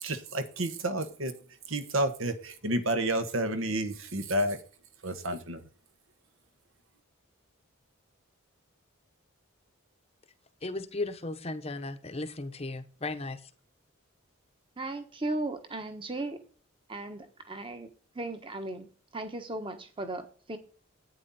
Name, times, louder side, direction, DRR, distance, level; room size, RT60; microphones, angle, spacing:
voice 1, 0.0-1.3 1.7-4.6 5.0-5.6, right 1 dB, 70° right, 9 dB, 1.4 m, -30 dB
voice 2, 10.6-13.5, left 2 dB, 30° left, 9 dB, 0.9 m, -36 dB
voice 3, 14.8-16.4 16.9-17.9 18.1-18.9 19.1-20.6, right 2 dB, 25° right, 7 dB, 1.3 m, -36 dB
11.0 x 9.1 x 4.2 m, 0.42 s
head